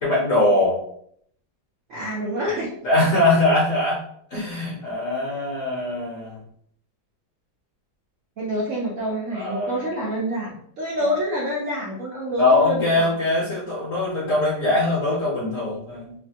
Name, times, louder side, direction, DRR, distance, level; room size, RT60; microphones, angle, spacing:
voice 1, 0.0-0.8 2.8-4.0 4.3-6.4 9.3-9.9 11.0-11.1 12.4-16.1, left 2 dB, 55° left, -6 dB, 0.9 m, -22 dB
voice 2, 1.9-2.7 8.4-13.1, equal, 75° right, -4 dB, 0.7 m, -27 dB
3.1 x 2.1 x 2.7 m, 0.67 s
omnidirectional pair, 2.1 m